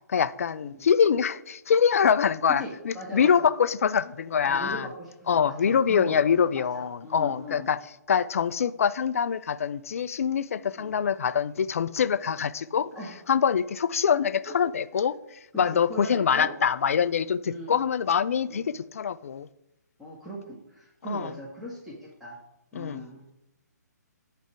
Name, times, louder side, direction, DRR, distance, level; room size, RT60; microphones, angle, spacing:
voice 1, 0.1-4.9 5.3-7.8 8.1-12.9 13.3-19.5 21.1-21.3 22.7-23.1, left 7 dB, 50° left, 0.4 m, -24 dB
voice 2, 2.5-3.5 4.4-5.1 5.4-7.7 10.8-10.9 12.9-13.1 14.4-14.5 15.5-16.5 17.4-17.7 18.5-18.6 20.0-22.4 22.7-23.2, equal, 5° right, 1.4 m, -39 dB
9.8 x 3.4 x 6.1 m
figure-of-eight pair, 135°, 10 cm